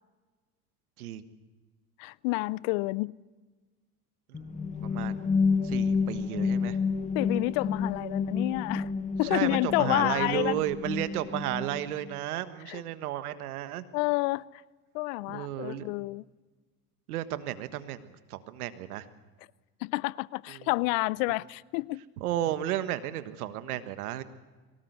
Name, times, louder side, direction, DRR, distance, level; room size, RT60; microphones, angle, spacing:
voice 1, 2.0-3.1 7.1-8.9 9.2-10.6 12.7-12.8 13.9-14.4 14.9-16.2 19.8-22.0, left 22 dB, 70° left, 0.7 m, -29 dB
sound 1, 4.3-12.1, left 5 dB, 15° left, 0.9 m, -30 dB
voice 2, 4.8-5.2 5.6-6.8 9.2-13.8 15.3-15.9 17.1-19.1 20.5-20.7 22.2-24.2, right 12 dB, 85° right, 1.5 m, -33 dB
23.0 x 18.5 x 8.1 m
hypercardioid pair, 80°, 43 cm